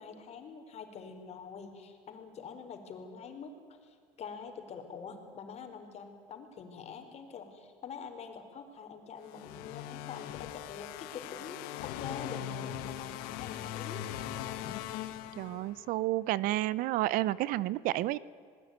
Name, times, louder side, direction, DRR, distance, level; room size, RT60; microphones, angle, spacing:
voice 1, 0.0-3.5 3.8-14.1, left 6 dB, 45° left, 6 dB, 4.7 m, -45 dB
sound 1, 9.3-15.9, left 11 dB, 75° left, 1.7 m, -40 dB
voice 2, 15.4-18.2, right 16 dB, 65° right, 20 dB, 0.8 m, -30 dB
27.0 x 20.5 x 9.6 m, 2.2 s
supercardioid pair, 110°, 15 cm